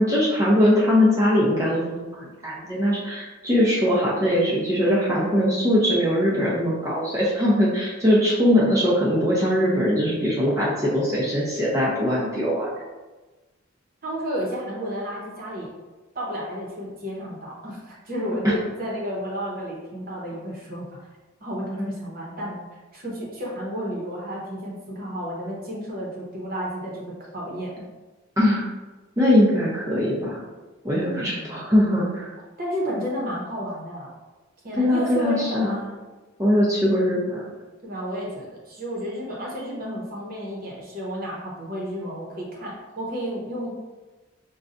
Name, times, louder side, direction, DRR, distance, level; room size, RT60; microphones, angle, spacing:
voice 1, 0.0-12.7 28.4-28.7 29.2-30.4 30.8-32.3 34.8-35.7 36.4-37.4, equal, 15° right, -7 dB, 0.6 m, -21 dB
voice 2, 14.0-15.7 16.1-20.9 21.4-22.6 22.9-27.0 27.3-27.8 31.0-31.4 32.6-34.1 34.6-36.0 37.8-43.7, equal, 50° right, -4 dB, 0.9 m, -31 dB
5.3 x 2.3 x 2.5 m, 1.2 s
head